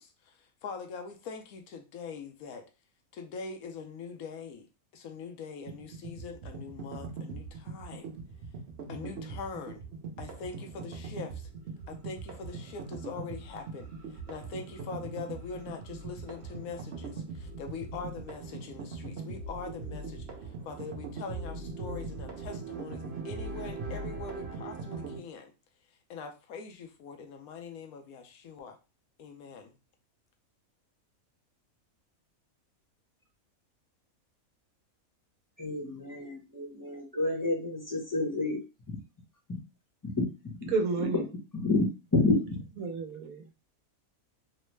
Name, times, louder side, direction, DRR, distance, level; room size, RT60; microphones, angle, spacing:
voice 1, 0.0-2.7 3.1-4.7 4.9-8.1 8.9-9.8 10.2-11.5 11.9-20.3 20.7-25.5 26.1-28.8 29.2-29.8, left 5 dB, 75° left, 1.0 m, -43 dB
sound 1, 5.7-25.2, right 4 dB, 55° right, 0.8 m, -40 dB
voice 2, 35.6-38.6 40.2-40.7 41.5-42.6, left 2 dB, 20° left, 0.7 m, -29 dB
voice 3, 40.7-41.3 42.8-43.6, right 4 dB, 80° right, 1.1 m, -31 dB
3.1 x 2.0 x 3.1 m
omnidirectional pair, 1.5 m